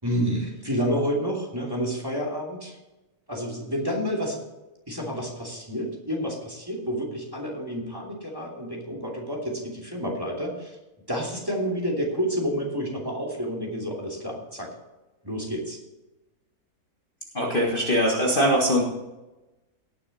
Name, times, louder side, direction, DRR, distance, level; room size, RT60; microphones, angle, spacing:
voice 1, 0.0-2.8 3.3-4.4 4.9-10.8 11.1-14.7 15.2-15.8, equal, 15° right, -2 dB, 2.8 m, -29 dB
voice 2, 17.3-18.8, equal, 35° left, -2 dB, 1.8 m, -22 dB
18.0 x 6.9 x 4.2 m, 1.0 s
omnidirectional pair, 1.7 m